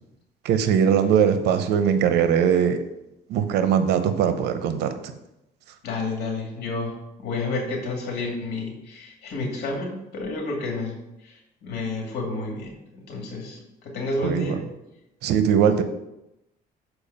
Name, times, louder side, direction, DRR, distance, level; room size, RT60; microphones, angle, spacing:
voice 1, 0.4-2.8 3.3-5.0 14.2-14.6 15.2-15.8, right 8 dB, 80° right, 9 dB, 0.8 m, -20 dB
voice 2, 5.8-14.6, left 3 dB, 75° left, 1 dB, 2.4 m, -30 dB
7.0 x 4.7 x 5.5 m, 0.88 s
cardioid pair, 110°, 17 cm